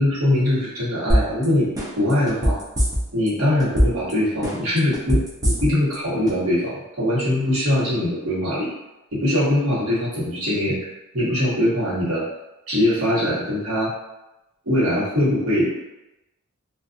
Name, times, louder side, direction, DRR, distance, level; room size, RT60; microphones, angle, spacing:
voice 1, 0.0-1.7 2.0-2.6 3.1-8.7 9.1-10.8 11.1-12.2 12.7-13.9 14.6-15.7, left 1 dB, 70° right, -9 dB, 1.2 m, -22 dB
sound 1, 1.1-1.4 1.8-3.3 3.6-4.1 4.4-5.9 6.3-6.4, equal, 15° right, 0.5 m, -20 dB
2.5 x 2.5 x 2.5 m, 0.96 s
head